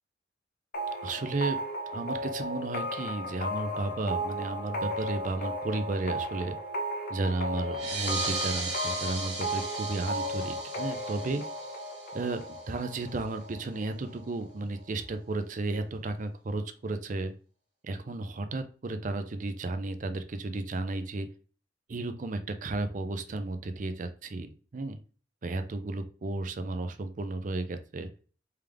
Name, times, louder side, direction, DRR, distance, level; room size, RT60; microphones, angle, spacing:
sound 1, 0.7-14.2, equal, 55° left, 0.8 m, -35 dB
voice 1, 1.0-1.6 1.9-6.6 7.1-11.4 12.1-12.4 12.7-17.3 17.8-21.3 21.9-25.0 25.4-28.1, right 2 dB, 45° right, 9 dB, 0.5 m, -33 dB
sound 2, 7.7-12.8, right 4 dB, 85° right, 1.7 m, -37 dB
3.4 x 3.4 x 3.4 m, 0.38 s
head